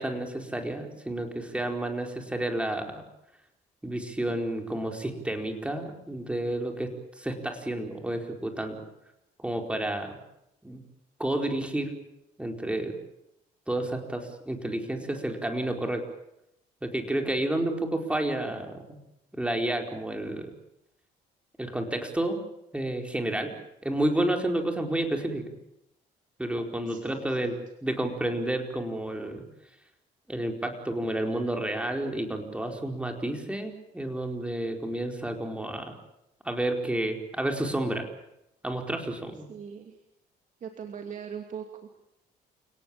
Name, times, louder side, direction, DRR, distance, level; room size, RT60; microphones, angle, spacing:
voice 1, 0.0-3.0 3.8-6.9 7.2-8.8 9.4-10.1 10.6-10.8 11.2-11.9 12.4-12.9 13.7-16.0 16.8-19.0 19.4-20.5 21.6-22.4 22.7-23.5 23.8-25.5 26.4-27.5 27.8-29.4 30.3-36.0 36.4-38.0 38.6-39.5, right 1 dB, 5° right, 3 dB, 4.6 m, -30 dB
voice 2, 26.9-27.4 39.5-40.0 40.6-42.0, right 7 dB, 50° right, 4 dB, 2.6 m, -40 dB
29.0 x 18.0 x 8.7 m, 0.85 s
cardioid pair, 110°, 17 cm